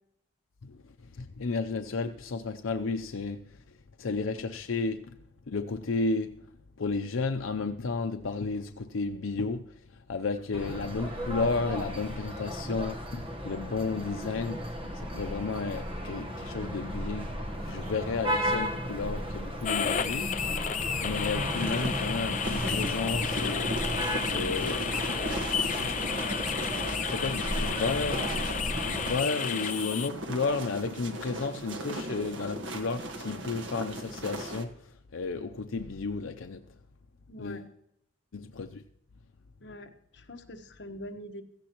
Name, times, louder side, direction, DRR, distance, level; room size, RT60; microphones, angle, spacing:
voice 1, 0.6-5.2 5.5-6.5 6.8-20.3 21.0-23.8 24.3-25.0 25.7-25.9 27.1-28.4 28.8-36.7 37.4-37.7 38.3-38.8, left 4 dB, 90° left, 0.6 m, -33 dB
sound 1, 10.5-29.2, equal, 25° right, 1.1 m, -34 dB
sound 2, 19.6-30.1, left 8 dB, 40° left, 0.4 m, -32 dB
sound 3, 21.1-34.6, right 1 dB, 75° right, 1.5 m, -37 dB
voice 2, 37.3-37.6 39.6-41.4, left 1 dB, 60° left, 1.2 m, -43 dB
16.5 x 15.0 x 3.0 m
head